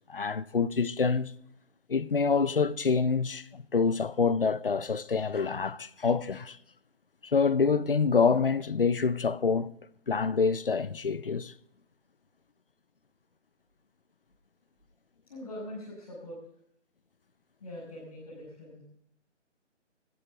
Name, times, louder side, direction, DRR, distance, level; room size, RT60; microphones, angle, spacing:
voice 1, 0.0-1.4 1.9-6.6 7.2-9.7 10.1-11.5, left 5 dB, 50° left, 0.7 m, -26 dB
voice 2, 15.3-16.4 17.6-18.8, left 1 dB, 30° left, 5.8 m, -42 dB
18.5 x 12.0 x 3.8 m
hypercardioid pair, 175°, 36 cm